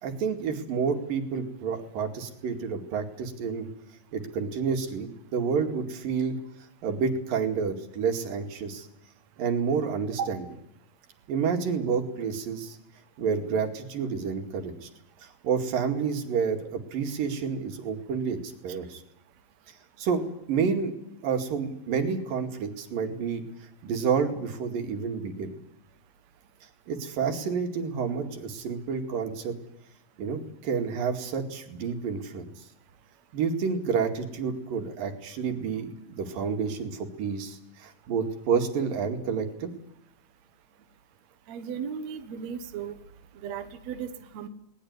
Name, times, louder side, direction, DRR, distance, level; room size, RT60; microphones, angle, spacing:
voice 1, 0.0-3.7 4.1-6.4 6.8-8.9 9.4-10.4 11.3-12.8 13.2-14.9 15.2-19.0 20.0-20.9 21.2-23.4 23.8-25.6 26.9-29.6 30.2-32.5 33.3-39.7, right 6 dB, 85° right, 5 dB, 4.1 m, -29 dB
voice 2, 41.5-42.9 43.4-44.5, right 7 dB, 60° right, 8 dB, 2.4 m, -35 dB
20.5 x 20.0 x 9.6 m, 0.79 s
omnidirectional pair, 3.9 m